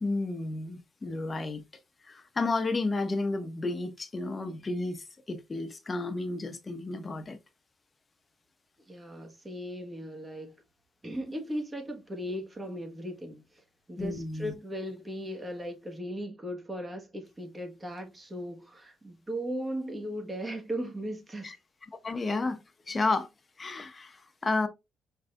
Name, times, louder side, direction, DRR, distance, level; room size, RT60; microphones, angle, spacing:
voice 1, 0.0-1.6 2.0-7.4 14.0-14.5 21.4-21.6 22.0-23.3 23.6-24.7, left 3 dB, 30° left, 0.8 m, -32 dB
voice 2, 8.9-10.5 11.0-21.5, equal, 20° right, 1.4 m, -37 dB
5.0 x 3.3 x 2.4 m
cardioid pair, 90°, 0 cm